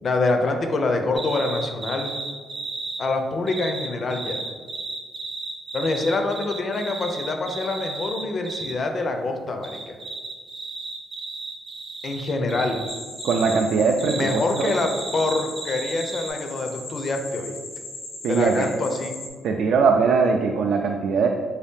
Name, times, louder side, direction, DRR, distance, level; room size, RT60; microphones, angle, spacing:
voice 1, 0.0-2.1 3.0-4.4 5.7-10.0 12.0-12.8 14.1-17.6 18.3-19.1, left 2 dB, 35° left, 4 dB, 0.4 m, -25 dB
sound 1, 1.1-3.0 3.5-8.7 9.6-13.6 14.0-16.3, right 3 dB, 35° right, 0.7 m, -34 dB
sound 2, 12.9-19.3, left 2 dB, 90° left, 1.0 m, -38 dB
voice 2, 13.2-14.8 18.2-18.7 19.4-21.3, right 5 dB, 60° right, 2 dB, 0.3 m, -21 dB
4.6 x 2.7 x 3.5 m, 1.5 s
cardioid pair, 150°, 0 cm